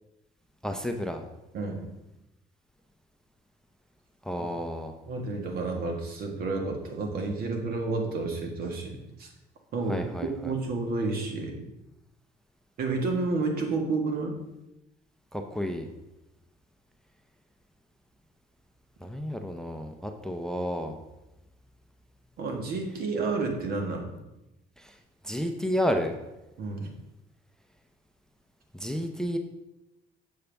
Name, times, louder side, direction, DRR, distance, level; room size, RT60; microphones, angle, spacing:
voice 1, 0.6-1.3 4.2-4.9 9.9-10.5 15.3-15.9 19.0-21.0 24.8-24.9 25.2-26.2 28.7-29.4, equal, 5° left, 5 dB, 0.6 m, -31 dB
voice 2, 1.5-1.8 5.1-9.3 9.7-11.7 12.8-14.4 22.4-24.1 26.6-26.9, right 3 dB, 65° right, 2 dB, 1.5 m, -30 dB
7.1 x 6.7 x 3.4 m, 0.96 s
cardioid pair, 110°, 17 cm